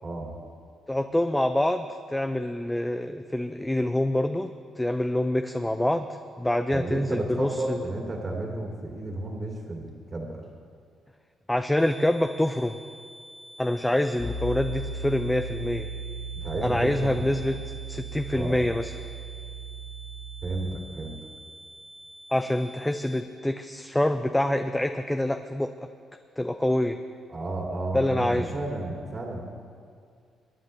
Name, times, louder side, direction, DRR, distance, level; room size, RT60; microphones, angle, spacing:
voice 1, 0.0-0.4 6.7-10.4 16.3-17.3 18.3-18.7 20.4-21.2 27.3-29.4, right 2 dB, 40° right, -1 dB, 2.3 m, -32 dB
voice 2, 0.9-6.1 6.4-7.8 11.5-12.8 13.6-15.9 16.6-17.6 17.9-18.9 22.3-25.7 26.4-27.0 27.9-28.5, left 1 dB, 10° left, 7 dB, 0.5 m, -26 dB
sound 1, 11.8-23.2, right 1 dB, 65° right, 2.3 m, -47 dB
Piano, 14.2-20.5, right 3 dB, 45° left, 1.9 m, -36 dB
22.5 x 9.4 x 3.2 m, 2.2 s
supercardioid pair, 70°, 0 cm